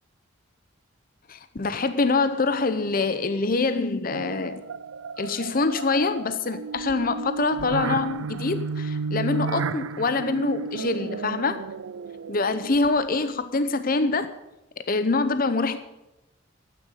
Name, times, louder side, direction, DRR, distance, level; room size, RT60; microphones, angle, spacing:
voice 1, 1.3-4.6 5.2-11.6 12.3-14.3 14.9-15.8, left 3 dB, 45° left, 11 dB, 0.7 m, -25 dB
sound 1, 4.1-13.2, right 5 dB, 80° right, 0.5 m, -33 dB
12.0 x 9.2 x 9.1 m, 0.93 s
head